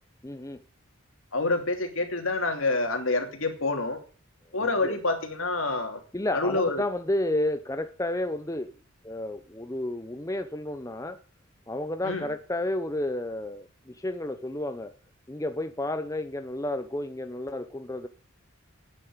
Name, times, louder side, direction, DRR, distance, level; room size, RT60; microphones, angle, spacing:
voice 1, 0.2-0.6 4.5-5.0 6.1-8.7 9.0-11.2 11.7-13.7 14.0-14.9 15.3-18.1, left 1 dB, 15° left, 0.8 m, -31 dB
voice 2, 1.3-4.0 4.5-6.0 6.3-6.8 12.0-12.3, left 2 dB, 75° left, 3.0 m, -27 dB
9.9 x 9.8 x 9.0 m
head